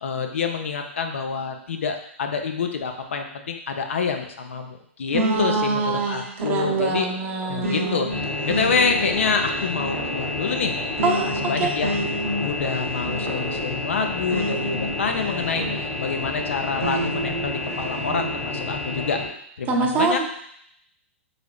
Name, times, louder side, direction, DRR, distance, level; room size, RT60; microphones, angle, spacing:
voice 1, 0.0-7.1 7.5-8.1 8.4-10.7 11.0-12.0 12.4-19.2 19.6-20.2, left 5 dB, 70° left, 5 dB, 0.5 m, -27 dB
voice 2, 5.1-8.0 11.0-11.7 19.7-20.2, right 4 dB, 25° right, 1 dB, 0.6 m, -24 dB
sound 1, 5.1-16.2 16.8-18.4, right 1 dB, 80° right, 0.5 m, -31 dB
sound 2, 8.1-19.3, left 2 dB, 25° left, 0.9 m, -30 dB
3.8 x 3.2 x 2.3 m, 0.69 s
figure-of-eight pair, 110°, 7 cm